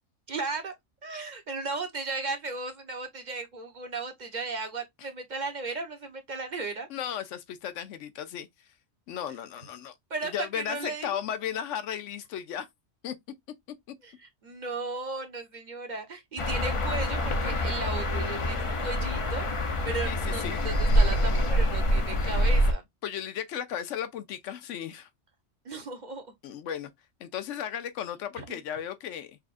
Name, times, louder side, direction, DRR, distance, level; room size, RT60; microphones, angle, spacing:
voice 1, 0.3-0.7 1.0-6.9 10.1-11.2 14.0-19.5 19.8-22.8 25.6-26.3 28.4-28.6, right 3 dB, 40° right, 1.0 m, -36 dB
voice 2, 6.9-8.7 9.1-9.9 10.3-12.7 13.0-13.1 20.0-20.6 23.0-25.1 26.4-26.9 27.2-29.4, left 9 dB, 85° left, 1.0 m, -35 dB
sound 1, 16.4-22.7, equal, 35° left, 0.6 m, -26 dB
6.1 x 2.4 x 2.5 m
omnidirectional pair, 1.2 m